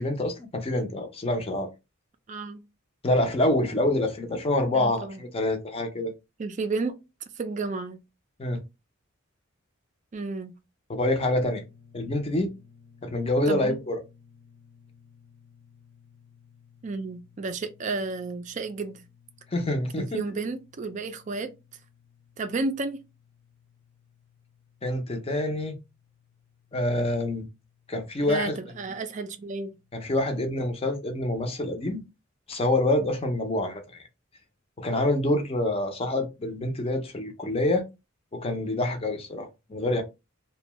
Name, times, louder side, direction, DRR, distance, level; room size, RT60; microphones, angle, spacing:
voice 1, 0.0-1.7 3.0-6.1 8.4-8.6 10.9-11.6 11.9-12.5 13.0-14.0 19.5-20.2 24.8-25.8 26.7-27.5 27.9-28.5 29.9-32.0 32.5-34.0 34.8-37.8 38.3-40.0, left 1 dB, 30° left, 0.5 m, -26 dB
voice 2, 2.3-2.6 4.7-5.2 6.4-7.0 7.4-8.0 10.1-10.5 13.5-13.8 16.8-19.0 20.0-21.5 22.4-23.0 28.2-29.8, right 3 dB, 35° right, 0.3 m, -32 dB
sound 1, 11.4-30.7, left 6 dB, 70° left, 0.8 m, -58 dB
2.6 x 2.2 x 3.0 m
head